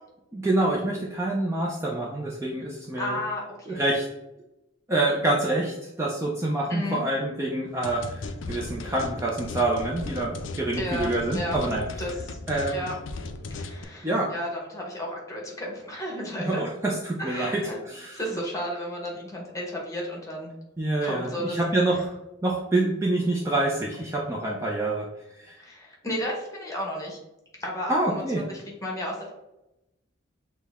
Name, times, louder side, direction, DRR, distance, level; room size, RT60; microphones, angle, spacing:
voice 1, 0.3-3.2 3.8-4.1 4.9-11.8 12.5-12.9 14.0-14.3 16.4-18.2 20.8-22.1 22.4-25.1 25.4-25.6 27.9-28.4, right 2 dB, 15° right, -3 dB, 0.4 m, -26 dB
voice 2, 2.9-3.8 6.7-7.0 10.8-11.6 12.0-12.4 12.7-13.0 13.5-16.6 17.2-17.8 18.1-20.5 21.0-21.6 25.6-27.2 27.6-29.3, equal, 15° left, -1 dB, 1.1 m, -33 dB
sound 1, 7.8-13.8, left 3 dB, 65° left, 0.4 m, -36 dB
6.2 x 2.1 x 3.5 m, 0.91 s
head